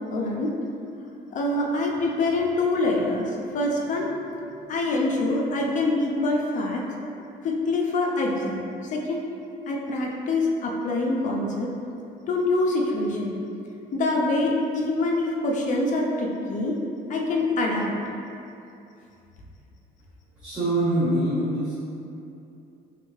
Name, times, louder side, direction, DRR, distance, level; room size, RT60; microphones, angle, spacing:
voice 1, 0.1-0.5 1.3-4.1 4.7-6.8 7.4-9.2 9.7-11.7 12.3-13.4 13.9-16.8 17.1-17.9, left 2 dB, 50° left, -1 dB, 0.6 m, -25 dB
voice 2, 20.4-21.7, right 1 dB, 5° right, -14 dB, 1.3 m, -24 dB
3.3 x 3.2 x 3.2 m, 2.7 s
cardioid pair, 110°, 17 cm